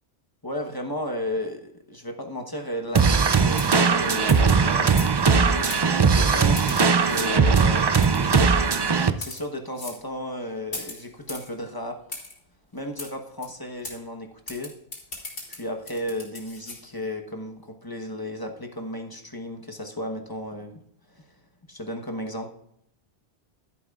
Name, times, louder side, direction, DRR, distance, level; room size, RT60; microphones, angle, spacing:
voice 1, 0.4-8.6 9.2-12.0 12.7-14.7 15.5-21.3 21.7-22.5, left 1 dB, 20° left, 3 dB, 1.2 m, -34 dB
sound 1, 2.9-3.2 3.6-3.8 4.3-4.4 5.0-5.3 5.7-5.8 6.6-7.2 8.0-8.4 9.1-9.4 9.8-10.0 10.7-11.5 12.1-12.3 13.0-13.1 13.4-13.5 13.8-14.0 14.5-16.8, left 2 dB, 80° left, 3.1 m, -38 dB
sound 2, 2.9-9.1, right 5 dB, 40° right, 0.3 m, -19 dB
12.0 x 11.0 x 2.4 m, 0.74 s
omnidirectional pair, 1.1 m